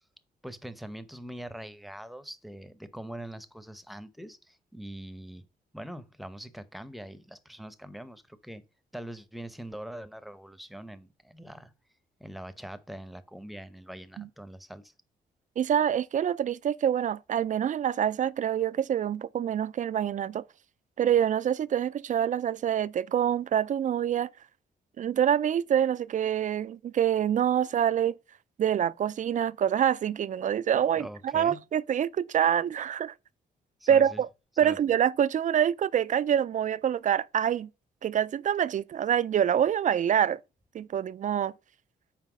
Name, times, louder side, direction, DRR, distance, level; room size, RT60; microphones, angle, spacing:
voice 1, 0.4-5.4 5.7-8.6 8.9-11.7 12.2-14.9 27.6-27.8 31.0-31.6 33.8-34.2 34.6-34.8, right 1 dB, ahead, 0.8 m, -43 dB
voice 2, 15.6-20.4 21.0-24.3 25.0-28.2 28.6-33.1 33.9-34.3 34.6-37.7 38.0-40.4 40.7-41.5, right 9 dB, 50° right, 0.4 m, -26 dB
5.8 x 4.5 x 6.1 m
cardioid pair, 90°, 17 cm